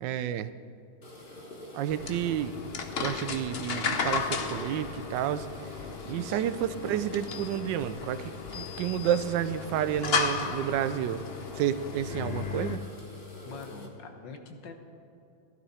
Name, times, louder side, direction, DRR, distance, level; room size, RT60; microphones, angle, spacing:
voice 1, 0.0-0.5 1.7-2.6 3.0-11.2 11.5-12.8, right 10 dB, 85° right, 13 dB, 1.3 m, -30 dB
sound 1, 1.0-13.9, left 1 dB, 30° left, 1.5 m, -48 dB
Dog, 1.4-2.9 3.7-6.0, right 5 dB, 65° right, 1.3 m, -49 dB
sound 2, 1.9-12.8, left 5 dB, 50° left, 0.7 m, -34 dB
voice 2, 6.0-6.6 13.5-14.7, left 5 dB, 85° left, 5 dB, 1.8 m, -45 dB
15.5 x 12.0 x 4.2 m, 2.8 s
omnidirectional pair, 1.9 m